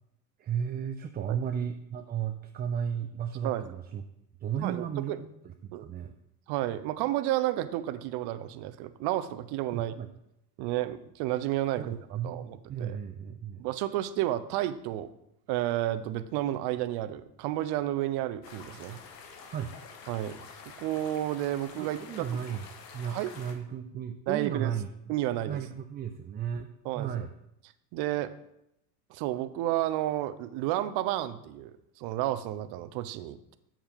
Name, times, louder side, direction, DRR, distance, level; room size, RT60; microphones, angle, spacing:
voice 1, 0.4-4.0 4.4-6.1 9.7-10.1 11.8-13.6 19.5-19.7 21.8-22.7 22.9-24.9 25.4-26.7 26.9-27.3, right 8 dB, 20° right, 6 dB, 0.4 m, -34 dB
voice 2, 4.6-5.2 5.7-5.9 6.5-9.9 10.6-13.0 13.6-15.1 15.5-19.0 20.1-20.4 20.8-22.4 23.1-23.3 24.3-24.7 25.1-25.6 26.8-27.2 27.9-28.3 29.1-33.6, right 14 dB, 55° right, 12 dB, 0.7 m, -31 dB
sound 1, 18.4-23.5, left 5 dB, 80° left, 1.4 m, -48 dB
7.4 x 7.2 x 3.6 m, 0.81 s
hypercardioid pair, 85°, 48 cm